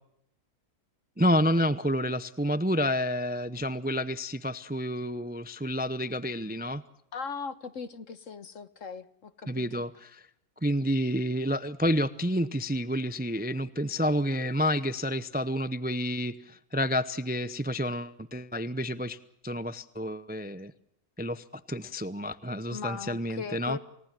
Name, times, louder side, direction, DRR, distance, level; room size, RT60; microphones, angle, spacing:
voice 1, 1.2-6.8 9.5-10.2 10.6-19.2 19.4-20.7 21.2-23.8, equal, 10° right, 14 dB, 0.5 m, -29 dB
voice 2, 7.1-9.8 22.7-23.8, left 5 dB, 60° left, 13 dB, 1.6 m, -39 dB
29.0 x 18.0 x 7.5 m, 0.75 s
omnidirectional pair, 1.5 m